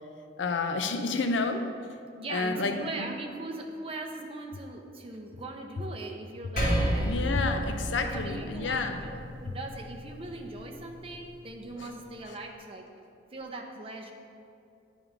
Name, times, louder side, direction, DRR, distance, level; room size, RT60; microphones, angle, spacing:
voice 1, 0.4-1.7 2.3-3.1 7.0-9.0 11.8-11.9, left 3 dB, 85° left, 7 dB, 0.5 m, -30 dB
voice 2, 2.2-7.2 8.0-12.9 13.3-14.1, right 2 dB, 30° right, 2 dB, 0.6 m, -40 dB
Percussion, 6.6-11.3, equal, 45° left, 1.6 m, -32 dB
9.0 x 3.1 x 5.0 m, 2.5 s
head